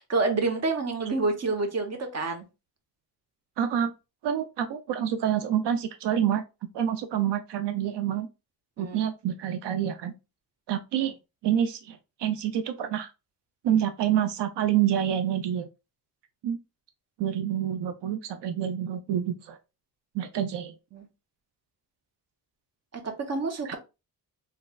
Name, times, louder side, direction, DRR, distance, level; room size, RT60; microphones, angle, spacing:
voice 1, 0.0-2.4 8.8-9.0 20.9-21.1 22.9-23.8, right 3 dB, 40° right, 0.8 m, -28 dB
voice 2, 3.6-3.9 4.2-6.4 6.7-8.3 8.8-10.1 10.7-11.1 11.4-13.1 13.6-15.7 16.4-16.6 17.2-19.6 20.1-20.7 23.7-23.8, right 10 dB, 85° right, 0.5 m, -27 dB
3.5 x 3.1 x 2.2 m
wide cardioid pair, 140°, 41 cm